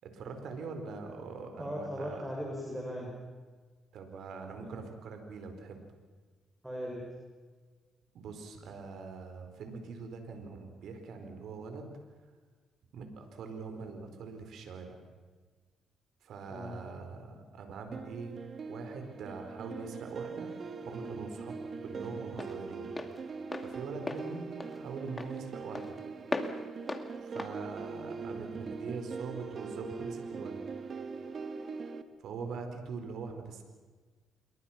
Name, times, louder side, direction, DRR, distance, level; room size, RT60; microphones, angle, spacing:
voice 1, 0.0-2.3 3.9-5.8 8.1-12.0 12.9-15.0 16.2-18.4 18.7-20.5 20.8-21.5 21.8-22.9 23.6-26.0 27.2-30.6 32.2-33.6, right 4 dB, 75° right, 6 dB, 4.7 m, -43 dB
voice 2, 1.5-3.1 6.6-7.0 16.5-16.8, equal, 5° right, -2 dB, 6.7 m, -38 dB
sound 1, 17.9-32.0, right 5 dB, 50° right, 1.7 m, -42 dB
Walk footsteps, 20.1-28.8, left 2 dB, 20° left, 2.3 m, -41 dB
28.0 x 23.0 x 6.1 m, 1.4 s
cardioid pair, 90°, 0 cm